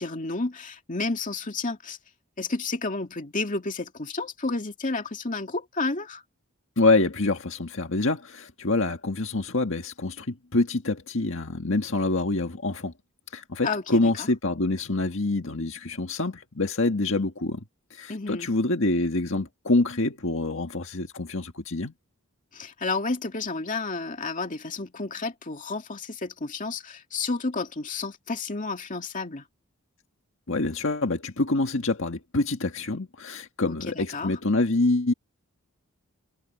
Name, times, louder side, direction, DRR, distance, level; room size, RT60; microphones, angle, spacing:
voice 1, 0.0-2.0 2.4-6.2 13.6-14.3 18.1-18.5 22.5-29.4 33.7-34.3, left 3 dB, 35° left, 2.3 m, -31 dB
voice 2, 6.8-12.9 13.3-17.6 17.9-21.9 30.5-35.1, left 2 dB, 65° left, 1.8 m, -26 dB
head